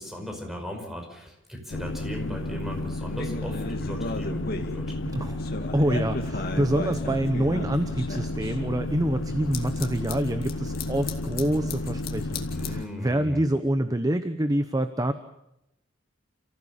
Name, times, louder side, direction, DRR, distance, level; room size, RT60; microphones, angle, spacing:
voice 1, 0.0-4.9 12.5-13.4, left 1 dB, ahead, 2 dB, 5.3 m, -37 dB
sound 1, 1.7-12.9, left 2 dB, 80° left, 0.9 m, -32 dB
sound 2, 3.2-5.0 5.3-8.6 9.3-12.8, left 2 dB, 55° left, 2.2 m, -36 dB
voice 2, 5.1-5.4 5.7-15.1, right 1 dB, 20° right, 9 dB, 0.9 m, -26 dB
29.5 x 15.5 x 7.3 m, 0.86 s
head